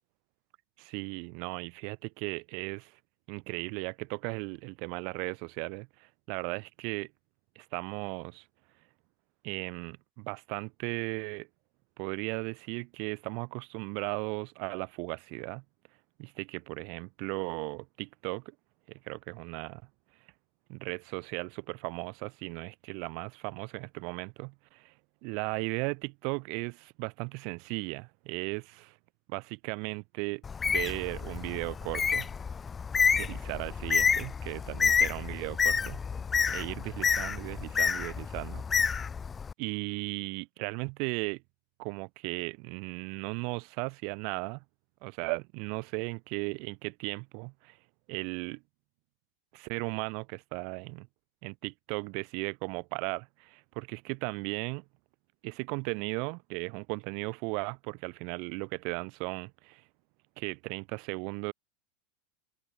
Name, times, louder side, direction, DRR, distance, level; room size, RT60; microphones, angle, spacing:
voice 1, 0.8-2.9 3.3-7.1 7.6-8.4 9.4-11.5 12.0-15.6 16.2-18.4 19.0-19.8 20.7-24.9 25.2-29.0 29.3-32.3 33.1-36.0 36.5-39.0 39.6-41.4 41.8-44.6 45.0-47.8 48.1-48.6 49.5-51.1 51.4-54.8 55.4-59.8 60.4-61.5, right 35 dB, 50° right, 3.9 m, -36 dB
Bird, 30.4-39.5, left 6 dB, 15° left, 1.5 m, -29 dB
open air
supercardioid pair, 150°, 0 cm